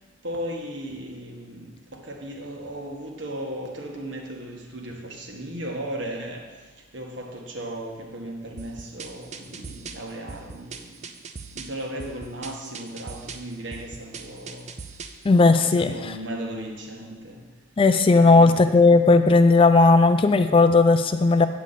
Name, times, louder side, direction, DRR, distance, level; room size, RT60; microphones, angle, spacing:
voice 1, 0.2-6.5 6.9-10.9 11.5-14.7 15.6-17.4 18.1-18.7, right 1 dB, 70° right, 1 dB, 1.5 m, -36 dB
sound 1, 8.6-15.3, right 4 dB, 35° right, 0.5 m, -41 dB
voice 2, 15.2-15.9 17.8-21.5, left 3 dB, 30° left, 9 dB, 0.3 m, -16 dB
8.3 x 8.2 x 4.1 m, 1.3 s
head